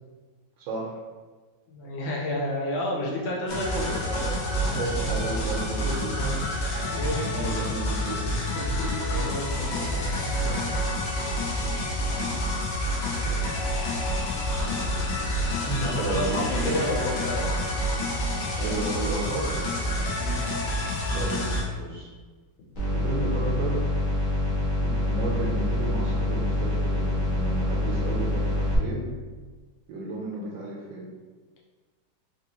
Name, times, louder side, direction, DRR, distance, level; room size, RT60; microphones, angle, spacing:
voice 1, 0.6-1.0 4.6-6.1 7.1-8.2 10.3-11.0 12.0-12.3 13.2-13.6 14.6-15.3 15.7-16.7 18.5-19.6 21.1-22.1 22.9-23.8 24.8-29.1 29.9-31.1, right 3 dB, 85° right, -6 dB, 1.4 m, -33 dB
voice 2, 1.7-4.5 5.8-6.4 6.8-7.5 8.1-8.2 8.5-10.0 15.8-17.8 20.0-20.4, left 1 dB, 85° left, -4 dB, 1.6 m, -31 dB
sound 1, 3.5-21.6, left 1 dB, 70° left, 0.9 m, -28 dB
sound 2, 22.7-28.8, left 1 dB, 40° left, 0.8 m, -26 dB
3.6 x 2.7 x 2.9 m, 1.4 s
omnidirectional pair, 2.1 m